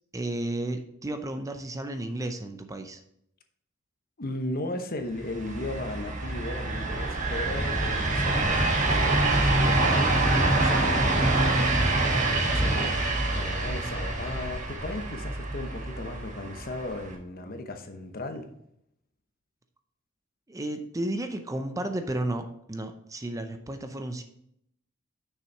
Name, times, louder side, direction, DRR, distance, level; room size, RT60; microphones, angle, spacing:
voice 1, 0.1-3.0 12.5-12.9 20.5-24.2, right 1 dB, 15° right, 7 dB, 0.6 m, -33 dB
voice 2, 4.2-11.3 11.6-13.0 13.2-18.5, left 2 dB, 45° left, 6 dB, 0.9 m, -36 dB
sound 1, 5.2-17.1, right 2 dB, 40° right, 1.3 m, -26 dB
6.7 x 6.1 x 4.5 m, 0.73 s
head